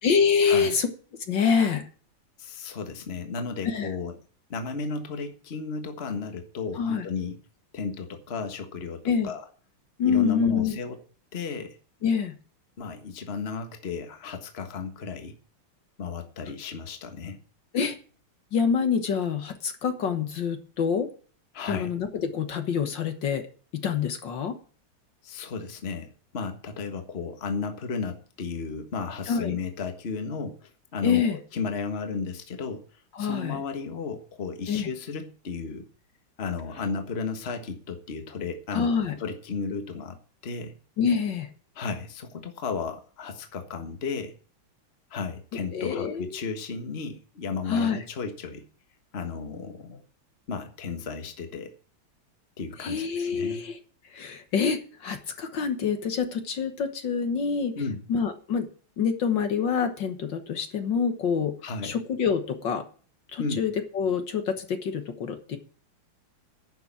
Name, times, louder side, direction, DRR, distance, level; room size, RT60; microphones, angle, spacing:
voice 1, 0.0-0.9 1.3-1.9 3.6-3.9 6.7-7.1 9.1-9.3 10.0-10.8 12.0-12.4 17.7-18.0 18.5-21.1 21.7-23.5 23.7-24.6 29.3-29.6 31.0-31.4 33.1-33.6 34.7-34.9 38.7-39.2 41.0-41.5 45.7-46.3 47.7-48.0 52.8-53.8 54.1-57.8 58.1-58.7 59.0-61.6 61.8-62.9 63.3-65.6, left 6 dB, 60° left, 7 dB, 1.9 m, -26 dB
voice 2, 2.4-4.1 4.5-7.4 7.7-9.4 10.0-11.0 11.3-11.8 12.8-15.3 16.0-17.4 21.5-21.9 25.2-35.8 36.4-38.9 39.2-40.2 40.4-40.7 41.7-44.3 45.1-48.6 49.1-50.0 50.5-51.7 52.6-53.6 57.7-58.0 61.6-62.0 63.4-63.6, left 5 dB, 30° left, 7 dB, 1.5 m, -34 dB
10.5 x 6.9 x 8.7 m, 0.41 s
omnidirectional pair, 2.3 m